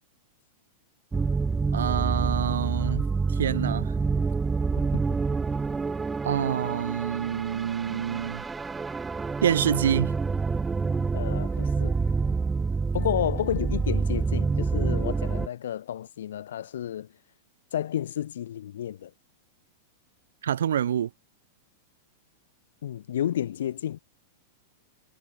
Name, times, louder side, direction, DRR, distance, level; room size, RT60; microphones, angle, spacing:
sound 1, 1.1-15.5, right 4 dB, 15° right, 0.9 m, -27 dB
voice 1, 1.7-3.0 3.3-3.9 6.2-8.5 9.4-10.1 20.4-21.1, right 9 dB, 80° right, 0.9 m, -26 dB
voice 2, 11.1-12.0 12.9-17.1 17.7-19.1 22.8-24.0, left 10 dB, 80° left, 2.5 m, -31 dB
hypercardioid pair, 115°, 0 cm